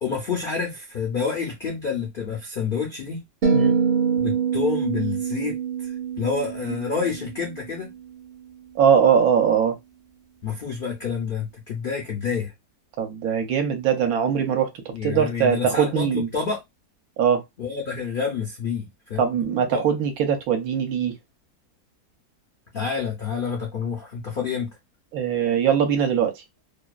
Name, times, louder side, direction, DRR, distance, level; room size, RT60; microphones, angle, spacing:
voice 1, 0.0-3.2 4.2-7.9 10.4-12.5 14.9-16.6 17.6-19.3 19.7-19.8 22.7-24.7, left 6 dB, 75° left, 0.5 m, -28 dB
sound 1, 3.4-7.7, right 6 dB, 55° right, 0.5 m, -25 dB
voice 2, 8.8-9.8 13.0-14.7 15.0-16.3 17.2-17.4 19.2-21.1 25.1-26.3, right 7 dB, 75° right, 1.1 m, -21 dB
2.7 x 2.1 x 2.3 m
omnidirectional pair, 1.7 m